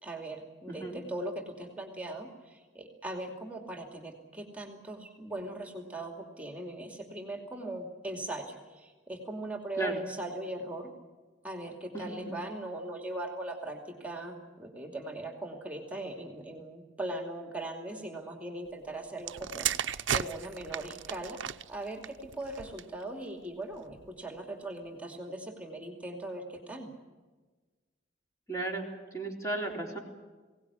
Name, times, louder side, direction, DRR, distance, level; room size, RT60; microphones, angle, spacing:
voice 1, 0.0-10.9 11.4-21.4 21.7-26.9, right 1 dB, 5° right, 3 dB, 2.5 m, -40 dB
voice 2, 11.9-12.3 28.5-28.9 29.1-30.0, right 2 dB, 15° left, 1 dB, 3.7 m, -34 dB
sound 1, 19.2-23.0 23.8-24.1, right 9 dB, 80° right, 0.7 m, -35 dB
22.5 x 18.0 x 9.9 m, 1.3 s
head